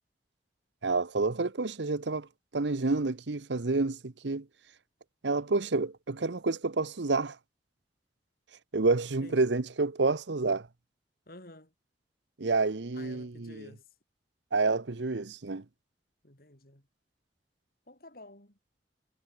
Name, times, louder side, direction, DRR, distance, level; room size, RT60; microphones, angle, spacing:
voice 1, 0.8-2.3 2.5-4.4 5.2-7.4 8.7-10.7 12.4-13.7 14.5-15.6, right 3 dB, 85° right, 0.9 m, -29 dB
voice 2, 9.2-9.5 11.3-11.7 12.9-13.9 16.2-16.9 17.9-18.6, left 1 dB, 55° left, 6.5 m, -51 dB
head